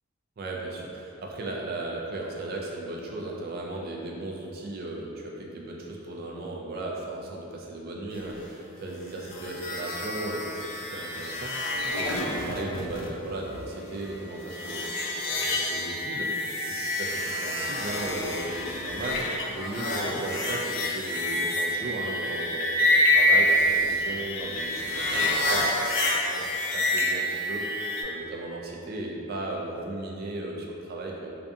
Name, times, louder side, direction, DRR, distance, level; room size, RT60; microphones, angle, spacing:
voice 1, 0.4-14.8 15.2-16.3 16.7-31.3, right 2 dB, 45° right, -2 dB, 0.3 m, -36 dB
sound 1, 9.2-28.0, left 1 dB, 65° left, 0.4 m, -27 dB
2.6 x 2.5 x 2.2 m, 2.7 s
head